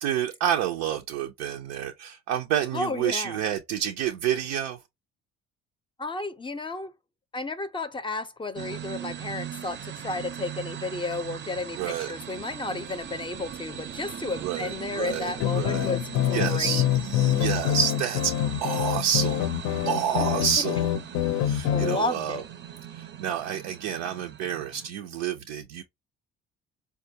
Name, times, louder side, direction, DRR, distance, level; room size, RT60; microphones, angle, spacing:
voice 1, 0.0-4.8 11.8-12.1 14.4-15.9 16.3-18.3 18.6-19.5 19.9-20.9 21.4-22.4 22.9-25.8, right 9 dB, 90° right, 0.5 m, -29 dB
voice 2, 2.7-3.4 6.0-6.9 7.3-16.8 21.7-22.4, left 3 dB, 15° left, 0.5 m, -32 dB
sound 1, 8.5-24.9, right 10 dB, 35° right, 0.5 m, -39 dB
sound 2, 15.4-22.0, left 12 dB, 65° left, 0.5 m, -26 dB
4.3 x 2.3 x 2.7 m
supercardioid pair, 65°, 31 cm